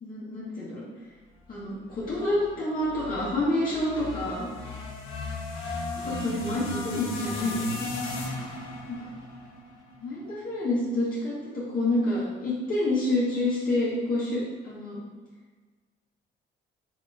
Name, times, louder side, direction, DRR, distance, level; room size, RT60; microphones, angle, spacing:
voice 1, 0.0-0.8 1.5-4.5 6.0-7.8 8.9-9.1 10.0-15.0, left 1 dB, 45° left, -8 dB, 1.5 m, -28 dB
sound 1, 1.9-10.3, left 2 dB, 85° left, 1.0 m, -35 dB
6.9 x 3.0 x 2.5 m, 1.4 s
cardioid pair, 90°, 20 cm